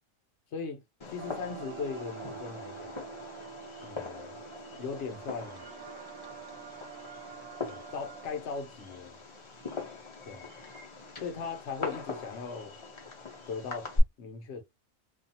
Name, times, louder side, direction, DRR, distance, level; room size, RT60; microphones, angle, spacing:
voice 1, 0.5-0.8 1.1-3.0 3.8-4.3 4.8-5.7 7.6-9.2 10.3-10.5 11.2-12.8 13.5-14.6, left 5 dB, 60° left, 0.9 m, -38 dB
Fireworks, 1.0-14.0, left 2 dB, 30° left, 0.6 m, -40 dB
sound 1, 1.2-8.3, right 7 dB, 85° right, 1.0 m, -46 dB
2.5 x 2.4 x 2.7 m
omnidirectional pair, 1.4 m